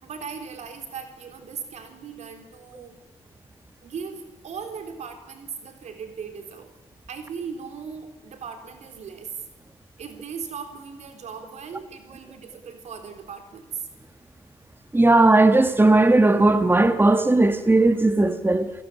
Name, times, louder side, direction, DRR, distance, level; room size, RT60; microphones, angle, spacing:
voice 1, 0.0-3.0 3.8-6.7 7.1-9.4 10.0-13.9, right 6 dB, 80° right, 3.8 m, -38 dB
voice 2, 14.9-18.7, right 2 dB, 20° right, 1.8 m, -17 dB
28.5 x 17.5 x 9.7 m
cardioid pair, 60°, 12 cm